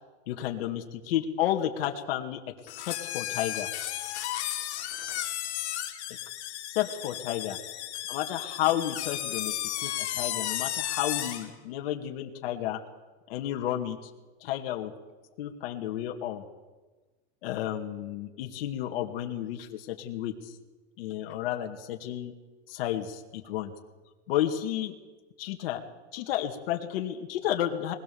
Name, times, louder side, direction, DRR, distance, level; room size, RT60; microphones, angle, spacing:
voice 1, 0.3-3.7 6.7-7.6 8.1-12.8 13.3-14.0 14.4-14.9 15.4-16.4 17.4-20.5 21.0-22.3 22.7-23.7 24.3-24.9 25.4-25.8 26.1-27.9, left 12 dB, 55° left, 3 dB, 2.3 m, -32 dB
sound 1, 2.7-11.5, left 12 dB, 75° left, 2.9 m, -34 dB
21.0 x 20.5 x 7.1 m, 1.2 s
supercardioid pair, 170°, 34 cm